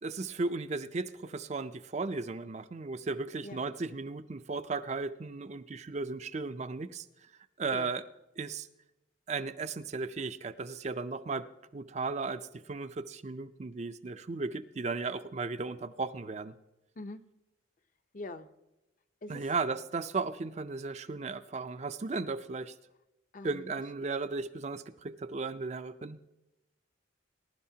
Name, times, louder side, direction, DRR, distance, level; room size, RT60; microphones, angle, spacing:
voice 1, 0.0-7.0 7.6-8.0 8.4-8.7 9.3-11.5 11.7-16.5 19.3-22.7 23.4-26.2, right 4 dB, 35° right, 10 dB, 0.4 m, -35 dB
voice 2, 18.1-18.5 19.2-19.4 23.3-23.6, left 2 dB, 40° left, 10 dB, 0.7 m, -42 dB
20.5 x 11.0 x 2.8 m, 0.96 s
head